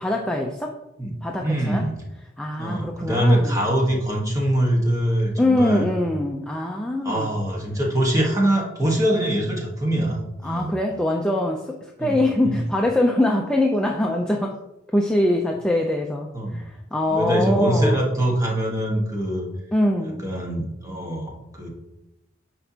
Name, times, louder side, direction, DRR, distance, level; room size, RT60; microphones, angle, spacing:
voice 1, 0.0-0.8 1.2-1.9 2.4-3.6 5.4-7.4 10.4-14.6 14.9-18.0 19.7-20.3, left 1 dB, 5° left, 0 dB, 0.4 m, -23 dB
voice 2, 1.4-1.9 2.6-5.9 7.0-10.7 12.0-12.6 16.3-16.6 17.1-19.5 20.0-21.7, right 1 dB, 15° right, -1 dB, 1.3 m, -23 dB
9.9 x 4.4 x 2.8 m, 0.92 s
head